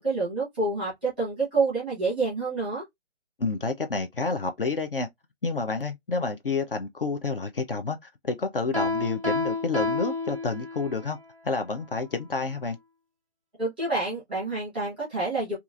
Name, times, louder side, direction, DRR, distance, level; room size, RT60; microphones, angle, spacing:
voice 1, 0.0-2.8 13.6-15.6, right 3 dB, 10° right, 0.8 m, -28 dB
voice 2, 3.4-5.1 5.4-8.0 8.2-11.2 11.4-12.8, left 4 dB, 50° left, 0.5 m, -29 dB
Piano, 8.7-11.0, left 2 dB, 30° right, 0.5 m, -29 dB
2.8 x 2.4 x 2.4 m
hypercardioid pair, 175°, 35 cm